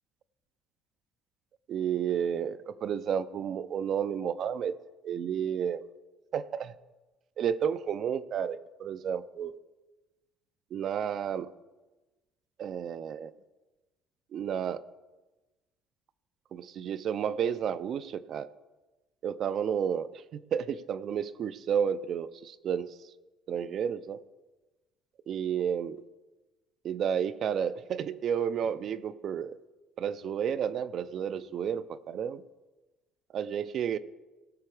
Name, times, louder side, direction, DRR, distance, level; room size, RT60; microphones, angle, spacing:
voice 1, 1.7-4.8 5.0-5.9 6.3-6.8 7.4-9.5 10.7-11.5 12.6-13.3 14.3-14.8 16.5-18.5 19.2-23.0 23.5-24.2 25.3-26.0 26.8-29.6 30.0-32.4 33.3-34.0, right 8 dB, 35° right, 14 dB, 0.4 m, -31 dB
17.5 x 6.9 x 4.8 m, 1.1 s
cardioid pair, 175°, 0 cm